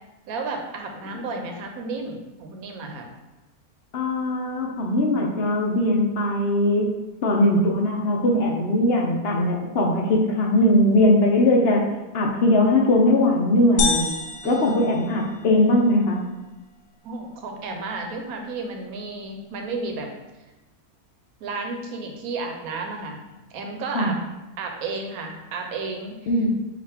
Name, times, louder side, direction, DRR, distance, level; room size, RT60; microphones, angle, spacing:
voice 1, 0.3-3.1 14.4-14.8 17.0-20.1 21.4-23.2 23.5-24.2 24.6-26.2, right 3 dB, 75° right, 3 dB, 1.1 m, -32 dB
voice 2, 3.9-11.9 12.1-14.1 14.4-16.2 23.9-24.1 26.3-26.5, left 1 dB, 65° left, 0 dB, 0.6 m, -20 dB
sound 1, 13.8-15.7, left 4 dB, 85° left, 1.2 m, -27 dB
4.9 x 2.5 x 3.4 m, 1.1 s
omnidirectional pair, 1.6 m